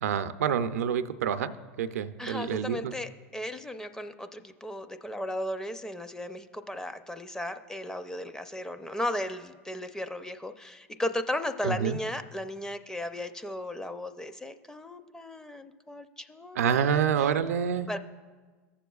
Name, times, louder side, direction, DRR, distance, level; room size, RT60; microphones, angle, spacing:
voice 1, 0.0-1.5 1.8-2.9 11.6-12.0 16.6-17.9, right 8 dB, 85° right, 11 dB, 0.4 m, -27 dB
voice 2, 2.2-17.0 17.9-18.0, left 1 dB, 10° left, 10 dB, 0.4 m, -35 dB
16.5 x 7.1 x 2.3 m, 1.4 s
hypercardioid pair, 105°, 8 cm